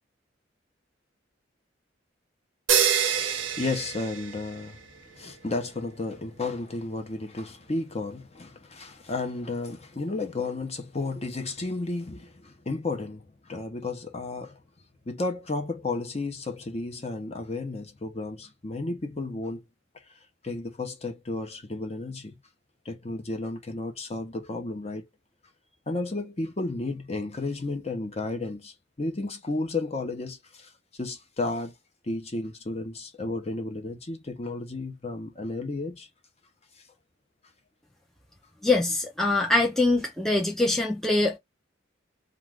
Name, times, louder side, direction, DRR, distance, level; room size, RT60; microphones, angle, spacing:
sound 1, 2.7-4.8, right 8 dB, 75° right, 0.6 m, -26 dB
voice 1, 3.2-4.8 5.1-14.6 15.1-19.6 20.4-22.4 22.8-25.1 25.9-30.7 31.0-31.7 32.0-36.1, left 2 dB, 35° left, 0.8 m, -33 dB
voice 2, 38.6-41.4, left 2 dB, ahead, 0.5 m, -23 dB
2.5 x 2.4 x 3.3 m
head